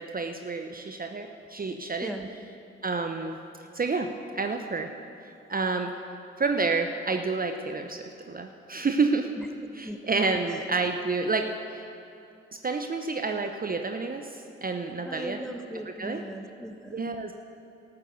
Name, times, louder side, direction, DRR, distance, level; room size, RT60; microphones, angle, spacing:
voice 1, 0.0-2.1 2.8-3.4 3.7-4.9 5.5-5.9 6.4-9.3 9.7-11.9 12.6-15.4 16.0-16.2 16.9-17.3, right 4 dB, 30° right, 6 dB, 0.8 m, -29 dB
voice 2, 15.0-17.0, equal, ahead, 6 dB, 1.1 m, -38 dB
13.0 x 8.3 x 7.0 m, 2.9 s
hypercardioid pair, 40°, 31 cm